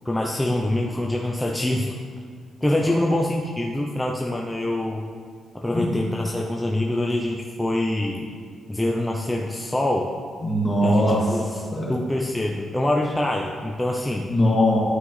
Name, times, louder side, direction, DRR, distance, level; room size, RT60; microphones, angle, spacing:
voice 1, 0.0-1.9 2.6-5.1 5.5-8.3 8.7-10.1 10.8-11.4 11.9-14.3, left 1 dB, 5° left, -1 dB, 0.5 m, -25 dB
voice 2, 10.4-11.4 11.7-11.9 14.3-14.8, left 1 dB, 20° left, -5 dB, 2.0 m, -21 dB
11.5 x 5.8 x 3.2 m, 2.1 s
cardioid pair, 130°, 0 cm